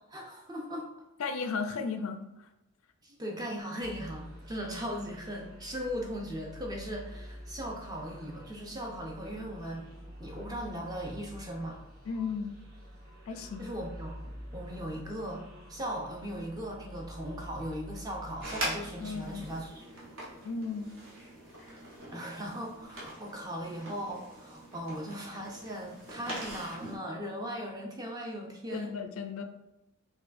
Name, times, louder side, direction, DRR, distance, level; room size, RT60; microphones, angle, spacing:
voice 1, 0.1-0.9 3.0-9.9 10.2-11.8 13.3-15.4 15.7-19.9 21.7-21.8 22.1-29.0, equal, 15° right, -1 dB, 0.5 m, -38 dB
voice 2, 1.2-2.5 12.0-12.5 13.3-13.7 19.0-19.5 20.4-20.9 28.7-29.4, left 5 dB, 70° left, 7 dB, 0.4 m, -35 dB
sound 1, 3.8-19.7, equal, 40° right, 1.4 m, -47 dB
sound 2, 18.4-27.0, right 1 dB, 60° right, 1.1 m, -42 dB
4.5 x 2.3 x 2.5 m, 0.91 s
head